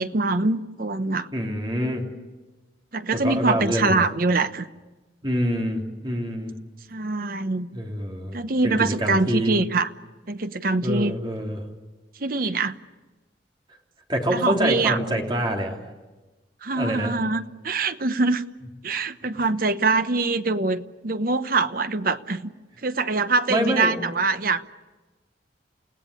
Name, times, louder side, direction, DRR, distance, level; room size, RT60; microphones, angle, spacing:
voice 1, 0.0-1.3 2.9-4.7 6.9-7.8 8.3-9.9 10.3-11.1 12.2-12.7 14.3-15.0 16.6-18.4 18.8-22.5 22.8-24.7, right 3 dB, 50° right, 11 dB, 0.9 m, -24 dB
voice 2, 1.3-2.0 3.2-4.1 5.2-6.5 7.7-9.6 10.8-11.6 14.1-15.8 16.7-17.1 23.5-24.0, equal, 25° right, 1 dB, 3.3 m, -26 dB
29.5 x 17.0 x 9.9 m, 1.2 s
head